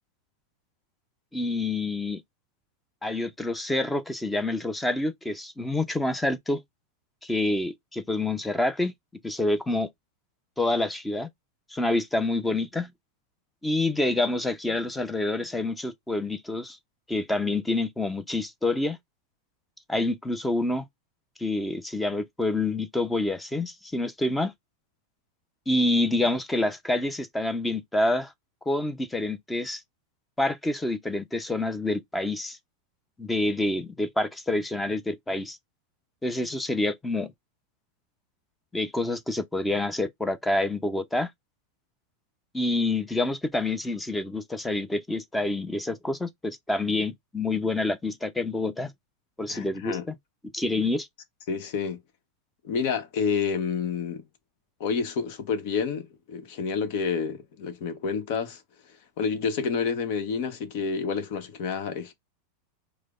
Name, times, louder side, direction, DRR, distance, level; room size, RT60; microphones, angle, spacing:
voice 1, 1.3-2.2 3.0-6.6 7.2-8.9 9.2-9.9 10.6-11.3 11.7-12.9 13.6-16.8 17.1-19.0 19.9-20.8 21.4-24.5 25.7-28.3 28.7-29.8 30.4-32.6 33.2-35.6 36.2-37.3 38.7-41.3 42.5-48.9 49.4-50.1 50.5-51.1, left 2 dB, 10° left, 0.6 m, -27 dB
voice 2, 49.5-50.0 51.5-52.0 52.6-54.2 54.8-58.6 59.2-62.1, left 6 dB, 60° left, 0.9 m, -29 dB
4.9 x 2.1 x 2.4 m
supercardioid pair, 130°, 0 cm